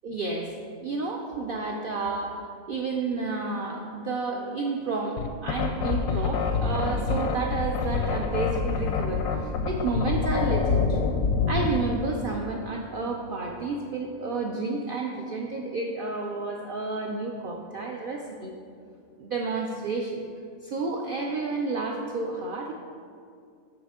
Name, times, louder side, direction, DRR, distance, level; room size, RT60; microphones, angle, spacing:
voice 1, 0.0-0.5 0.8-11.0 11.5-18.5 19.2-20.2 20.6-22.7, right 3 dB, 70° right, 0 dB, 0.5 m, -31 dB
sound 1, 5.2-11.8, left 5 dB, 80° left, 1.0 m, -26 dB
7.0 x 5.9 x 3.6 m, 2.3 s
omnidirectional pair, 1.5 m